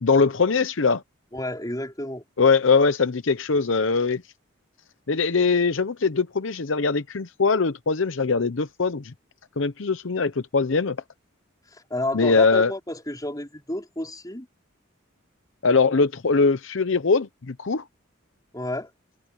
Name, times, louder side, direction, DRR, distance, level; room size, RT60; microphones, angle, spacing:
voice 1, 0.0-1.0 2.4-4.2 5.1-9.1 9.6-11.0 12.1-12.7 15.6-17.8, left 4 dB, 70° left, 0.8 m, -21 dB
voice 2, 1.3-2.2 11.9-14.5 18.5-18.9, left 1 dB, 20° left, 5.0 m, -30 dB
head